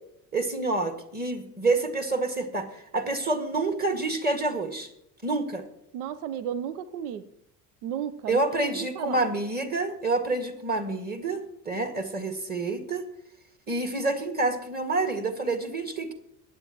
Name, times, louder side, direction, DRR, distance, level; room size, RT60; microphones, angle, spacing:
voice 1, 0.3-4.9 5.2-5.6 8.3-13.0 13.7-16.1, right 2 dB, 20° right, 6 dB, 2.0 m, -28 dB
voice 2, 5.9-7.2 7.8-9.2, right 9 dB, 70° right, 17 dB, 0.8 m, -34 dB
21.5 x 9.0 x 3.0 m, 0.78 s
figure-of-eight pair, 65°, 47 cm